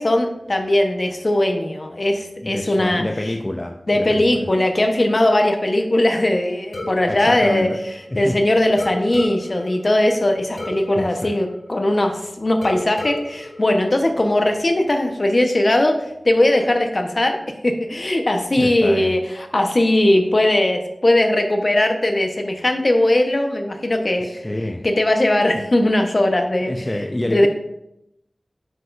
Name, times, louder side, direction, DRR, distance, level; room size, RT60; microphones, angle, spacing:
voice 1, 0.0-3.0 3.9-7.7 8.2-16.0 16.2-17.4 17.6-19.2 19.5-24.4 24.8-26.7 27.2-27.5, left 1 dB, 45° left, 4 dB, 1.0 m, -19 dB
voice 2, 2.4-4.5 6.8-7.8 8.1-8.5 10.2-10.3 11.0-11.4 18.6-19.2 24.2-24.9 25.5-25.7 26.6-27.5, left 1 dB, 25° left, 4 dB, 0.5 m, -27 dB
sound 1, 6.7-8.3 8.8-12.2 12.6-14.6, left 1 dB, 75° left, 1.8 m, -35 dB
9.1 x 6.2 x 2.6 m, 0.83 s
wide cardioid pair, 55°, 0 cm